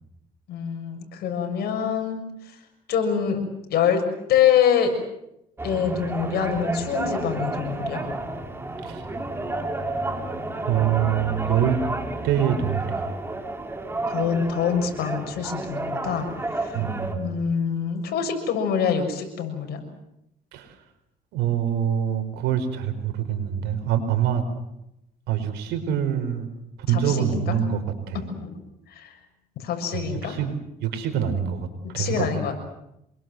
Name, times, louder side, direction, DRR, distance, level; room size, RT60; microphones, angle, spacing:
voice 1, 0.5-2.6 2.9-3.4 3.7-4.0 4.3-4.9 5.6-8.1 14.1-16.8 17.1-19.8 26.9-27.5 28.1-28.5 28.9-29.2 29.6-30.4 31.8-32.6, left 8 dB, 70° left, 5 dB, 6.6 m, -25 dB
sound 1, 5.6-17.1, right 2 dB, 15° right, 3.2 m, -31 dB
voice 2, 10.6-11.8 12.2-13.1 16.7-17.2 20.5-20.7 21.3-24.4 25.3-26.5 26.9-27.8 28.1-28.2 29.9-30.5 30.8-31.7 31.9-32.3, right 9 dB, 85° right, 8 dB, 4.7 m, -25 dB
26.5 x 23.0 x 7.9 m, 0.84 s
cardioid pair, 110°, 17 cm